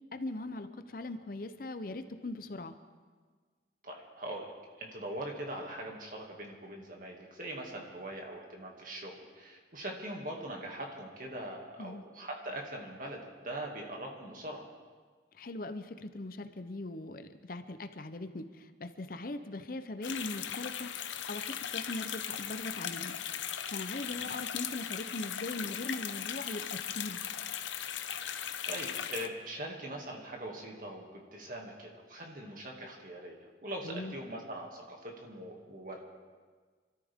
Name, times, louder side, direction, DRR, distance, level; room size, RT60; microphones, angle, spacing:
voice 1, 0.1-2.7 11.8-12.0 15.3-20.9 21.3-23.2 23.7-27.2 33.8-34.1, left 2 dB, 50° left, 9 dB, 0.7 m, -40 dB
voice 2, 3.8-4.5 4.8-14.6 24.1-24.3 28.3-36.0, right 1 dB, 45° right, 0 dB, 2.4 m, -42 dB
sound 1, 20.0-29.3, left 9 dB, 80° left, 0.8 m, -38 dB
26.0 x 13.5 x 3.7 m, 1.5 s
head